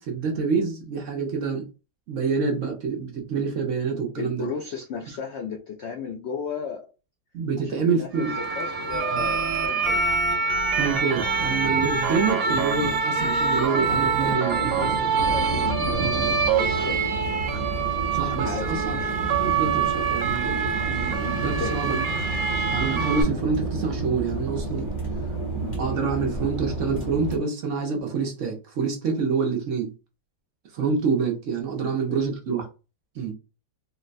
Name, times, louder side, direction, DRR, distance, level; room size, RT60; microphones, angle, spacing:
voice 1, 0.0-1.7 2.1-4.5 7.3-8.3 9.1-9.2 10.8-14.7 16.0-16.2 16.8-16.9 18.1-22.3 22.7-24.9 25.6-29.9 30.7-32.7 33.2-33.3, right 5 dB, 60° right, 0.9 m, -27 dB
voice 2, 4.2-6.9 7.6-10.0 14.2-17.1 18.4-18.7 21.4-21.8 31.8-32.2, left 5 dB, 85° left, 0.6 m, -35 dB
sound 1, 8.1-23.2, right 5 dB, 80° right, 0.5 m, -25 dB
sound 2, 8.9-16.0, right 2 dB, 30° right, 1.1 m, -33 dB
sound 3, 15.2-27.4, right 2 dB, 35° left, 0.9 m, -31 dB
3.8 x 2.1 x 2.5 m
omnidirectional pair, 1.7 m